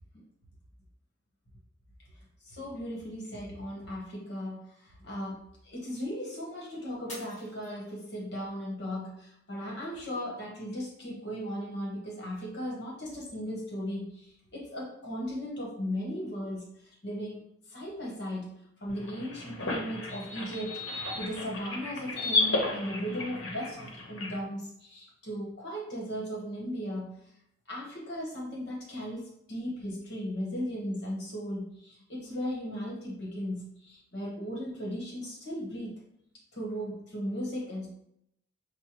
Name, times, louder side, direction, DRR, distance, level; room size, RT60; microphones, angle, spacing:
voice 1, 2.5-17.4 17.7-27.1 27.7-36.0 36.5-37.9, equal, 60° left, -3 dB, 1.2 m, -37 dB
Shatter, 7.1-8.4 8.9-9.4 9.9-10.0, left 1 dB, 35° left, 1.5 m, -47 dB
sound 1, 18.9-24.4, left 2 dB, 85° left, 0.9 m, -33 dB
6.3 x 2.2 x 3.0 m, 0.75 s
head